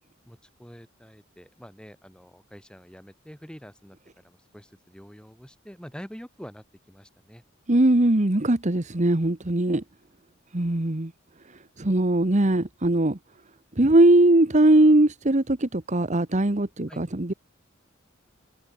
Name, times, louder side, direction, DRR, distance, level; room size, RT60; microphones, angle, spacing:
voice 1, 0.2-7.4 16.9-17.0, equal, 5° left, 4.7 m, -46 dB
voice 2, 7.7-9.8 10.5-11.1 11.8-13.2 13.8-17.3, right 1 dB, 35° right, 1.3 m, -20 dB
head